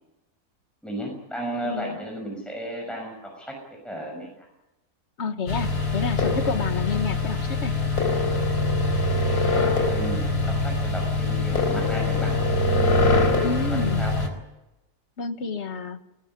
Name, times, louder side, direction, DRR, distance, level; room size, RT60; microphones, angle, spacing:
voice 1, 0.8-3.6 3.8-4.5 9.2-10.2 10.5-12.6 13.7-14.2, equal, ahead, 0 dB, 6.1 m, -34 dB
voice 2, 1.6-2.0 5.2-7.8 13.4-14.0 15.2-16.0, left 4 dB, 45° left, 8 dB, 1.7 m, -29 dB
sound 1, 5.5-14.3, left 3 dB, 75° left, 4.9 m, -23 dB
21.0 x 18.5 x 9.7 m, 0.97 s
omnidirectional pair, 1.6 m